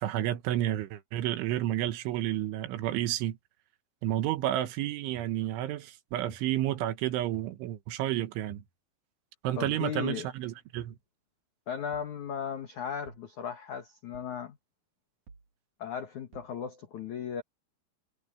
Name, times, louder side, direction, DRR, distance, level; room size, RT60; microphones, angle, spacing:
voice 1, 0.0-3.4 4.0-8.6 9.4-10.9, right 13 dB, 75° right, 3.4 m, -31 dB
sound 1, 0.8-0.9 1.9-2.0 3.0-3.1 4.1-4.2 5.2-5.3 6.3-6.5 7.3-7.6 8.5-8.7 9.6-9.9 10.8-11.0 11.9-12.1 13.1-13.3 14.1-14.4 15.3-15.5 16.3-16.5, right 3 dB, 45° right, 3.8 m, -53 dB
voice 2, 9.5-10.3 11.7-14.6 15.8-17.4, left 8 dB, 85° left, 1.6 m, -36 dB
omnidirectional pair, 5.9 m